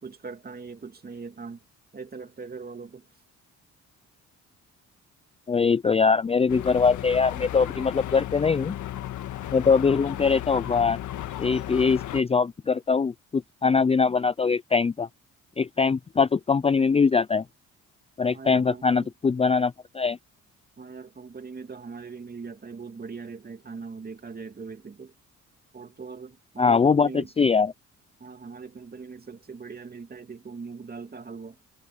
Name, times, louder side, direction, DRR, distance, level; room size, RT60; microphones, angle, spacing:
voice 1, 0.0-1.6 1.9-3.1 18.3-19.1 20.8-25.1 25.7-27.3 28.2-31.6, right 5 dB, 30° right, 2.5 m, -40 dB
voice 2, 5.5-8.8 9.5-11.0 11.4-15.1 15.6-17.4 18.2-20.2 26.6-27.7, left 5 dB, 20° left, 0.5 m, -22 dB
sound 1, 6.5-12.2, left 13 dB, 75° left, 1.6 m, -35 dB
cardioid pair, 90°, 30 cm